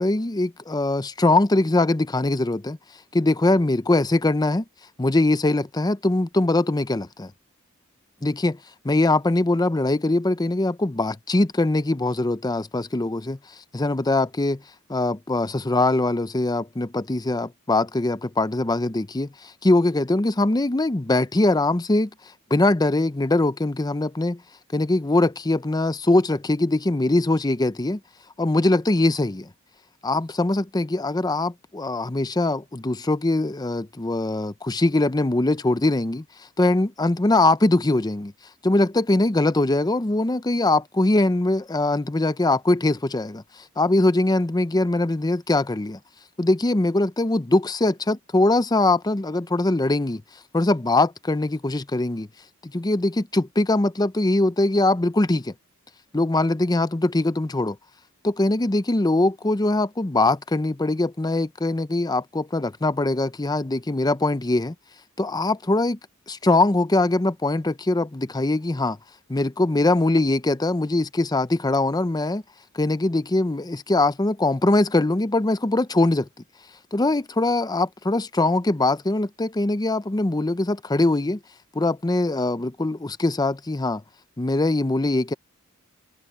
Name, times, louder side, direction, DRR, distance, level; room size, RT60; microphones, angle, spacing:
voice 1, 0.0-2.8 3.1-4.6 5.0-7.3 8.2-8.6 8.8-13.4 13.7-14.6 14.9-22.1 22.5-24.4 24.7-28.0 28.4-29.5 30.0-36.2 36.6-38.3 38.6-46.0 46.4-50.2 50.5-52.3 52.6-55.5 56.1-57.8 58.2-64.7 65.2-66.0 66.3-69.0 69.3-72.4 72.7-76.3 76.9-81.4 81.7-84.0 84.4-85.3, left 2 dB, 20° left, 0.6 m, -22 dB
head